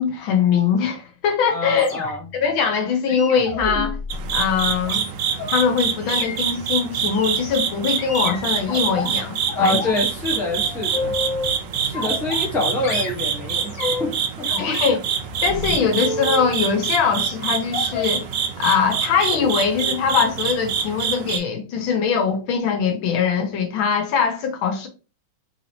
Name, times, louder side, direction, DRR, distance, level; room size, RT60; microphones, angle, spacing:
voice 1, 0.0-1.9 2.3-4.0 4.3-5.0 5.5-9.8 14.6-15.0 15.4-18.3 18.6-24.9, left 6 dB, 85° left, 1.5 m, -22 dB
voice 2, 1.5-2.2 9.6-11.1 11.8-14.1 14.4-14.5, left 2 dB, ahead, 0.4 m, -25 dB
sound 1, 1.8-2.4 3.1-5.6 6.0-6.4 7.0-7.3 8.0-9.1 9.5-10.0 10.3-11.5 11.9-12.6 12.8-14.1 14.5-16.5 17.7-18.2 18.8-19.0 19.3-19.5 19.8-20.0 20.3-20.4, left 3 dB, 60° left, 0.9 m, -31 dB
sound 2, 4.1-21.4, right 7 dB, 75° right, 1.2 m, -26 dB
4.0 x 2.7 x 2.8 m
omnidirectional pair, 2.2 m